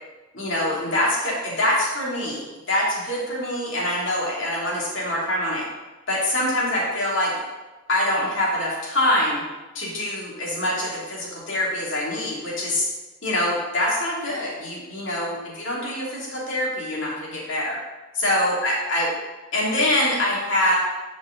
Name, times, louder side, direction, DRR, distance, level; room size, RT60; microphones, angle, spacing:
voice 1, 0.3-2.4 2.7-5.6 6.1-7.3 7.9-9.4 9.7-12.9 13.2-17.8 18.2-19.1 19.5-20.7, left 1 dB, 65° left, -4 dB, 2.7 m, -24 dB
11.0 x 5.3 x 3.9 m, 1.1 s
head